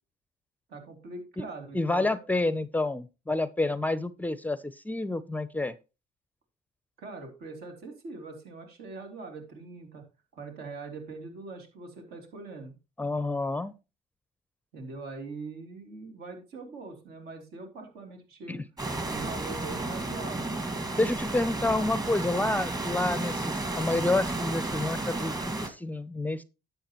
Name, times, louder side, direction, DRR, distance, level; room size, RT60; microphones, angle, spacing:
voice 1, 0.7-2.2 7.0-10.0 10.3-12.7 14.7-18.6 19.1-20.5, right 3 dB, 75° right, 4 dB, 3.2 m, -42 dB
voice 2, 1.7-5.7 13.0-13.7 18.5-18.6 21.0-25.3 25.6-26.4, left 2 dB, 10° left, 15 dB, 0.5 m, -29 dB
sound 1, 18.8-25.7, right 2 dB, 20° right, 1.9 m, -32 dB
11.5 x 7.9 x 3.0 m, 0.29 s
cardioid pair, 110°, 17 cm